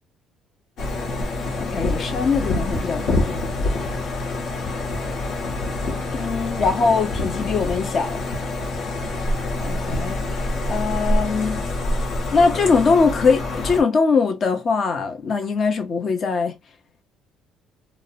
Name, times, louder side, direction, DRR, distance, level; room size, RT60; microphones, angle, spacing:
sound 1, 0.8-13.8, left 2 dB, 65° left, 0.9 m, -26 dB
voice 1, 1.6-3.3 6.1-8.2 9.6-10.2 10.7-11.6 12.3-16.5, left 4 dB, 40° left, 0.6 m, -21 dB
2.6 x 2.0 x 2.5 m
cardioid pair, 135°, 0 cm